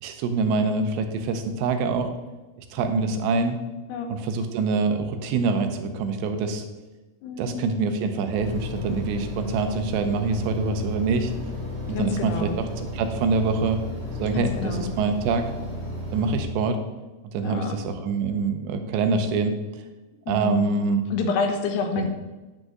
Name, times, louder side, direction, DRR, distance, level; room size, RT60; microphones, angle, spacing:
voice 1, 0.0-2.1 2.7-3.6 4.1-6.7 7.4-11.3 11.9-13.8 14.2-15.5 16.1-16.8 17.3-19.6 20.3-21.0 22.0-22.1, right 4 dB, 80° right, 7 dB, 2.9 m, -25 dB
voice 2, 2.8-3.1 3.9-4.1 7.2-7.6 11.9-12.6 14.3-14.9 17.4-17.8 20.3-20.8 21.1-22.1, left 4 dB, 75° left, 5 dB, 2.8 m, -28 dB
sound 1, 8.4-16.4, left 1 dB, 40° right, 1.7 m, -34 dB
9.7 x 5.1 x 7.7 m, 1.1 s
omnidirectional pair, 5.2 m